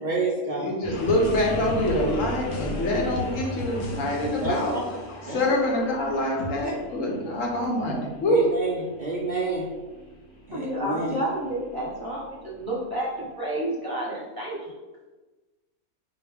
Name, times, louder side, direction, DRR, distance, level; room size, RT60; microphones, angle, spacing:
voice 1, 0.0-0.7 4.4-4.8 5.3-5.4 6.6-6.7 8.3-9.7 10.5-11.2, right 3 dB, 75° right, -4 dB, 0.4 m, -29 dB
voice 2, 0.6-4.8 5.2-8.5, left 1 dB, 65° left, -1 dB, 1.0 m, -25 dB
sound 1, 0.8-12.8, equal, 25° left, 0.7 m, -39 dB
sound 2, 0.9-6.6, left 1 dB, 90° left, 1.1 m, -36 dB
voice 3, 10.5-14.7, right 1 dB, 20° right, -6 dB, 0.8 m, -30 dB
4.6 x 2.3 x 3.4 m, 1.2 s
omnidirectional pair, 1.6 m